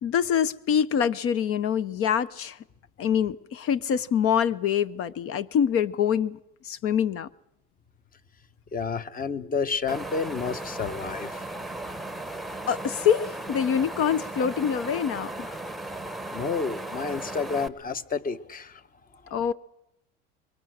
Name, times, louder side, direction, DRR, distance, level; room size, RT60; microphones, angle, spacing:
voice 1, 0.0-2.6 3.0-6.4 6.6-7.3 12.7-15.5 19.3-19.5, left 8 dB, 50° left, 0.8 m, -25 dB
voice 2, 8.7-11.5 16.3-18.8 19.3-19.4, left 5 dB, 30° left, 1.2 m, -30 dB
Wind, 9.9-17.7, right 2 dB, ahead, 1.0 m, -36 dB
24.5 x 23.5 x 6.5 m
supercardioid pair, 115°, 29 cm